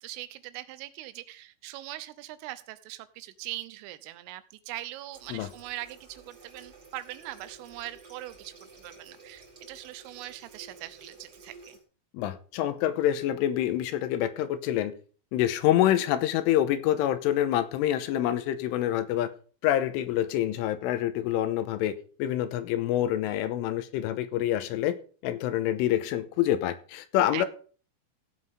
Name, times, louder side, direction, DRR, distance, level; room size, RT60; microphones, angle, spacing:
voice 1, 0.0-11.8 27.3-27.5, right 16 dB, 85° right, 14 dB, 3.4 m, -41 dB
Water tap faucet, 5.1-11.8, right 4 dB, 25° right, 3.1 m, -52 dB
voice 2, 12.1-14.9 15.3-19.3 19.6-21.9 22.2-25.0 25.2-27.5, left 12 dB, 85° left, 11 dB, 3.4 m, -26 dB
16.0 x 7.7 x 3.7 m, 0.40 s
omnidirectional pair, 5.7 m